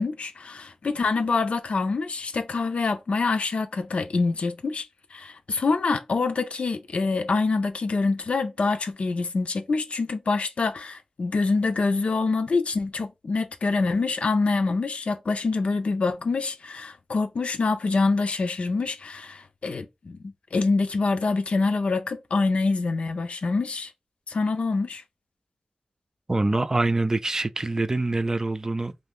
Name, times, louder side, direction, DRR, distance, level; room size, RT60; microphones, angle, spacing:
voice 1, 0.0-4.8 5.1-23.9 24.3-25.0, left 3 dB, 80° left, 0.5 m, -25 dB
voice 2, 26.3-29.0, right 2 dB, 30° right, 0.3 m, -25 dB
2.6 x 2.6 x 3.5 m
cardioid pair, 50°, 2 cm